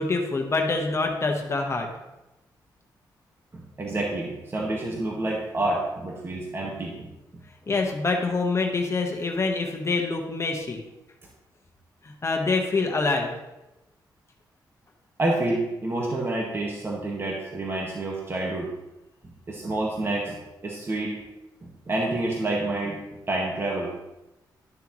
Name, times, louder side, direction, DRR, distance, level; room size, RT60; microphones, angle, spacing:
voice 1, 0.0-1.9 7.7-10.8 12.0-13.3, left 3 dB, 35° left, 2 dB, 1.3 m, -25 dB
voice 2, 3.8-7.1 15.2-18.7 19.5-20.4 20.6-21.2 21.9-23.0 23.3-23.9, right 2 dB, 30° right, -2 dB, 1.6 m, -28 dB
12.0 x 6.8 x 3.1 m, 0.97 s
cardioid pair, 85°, 8 cm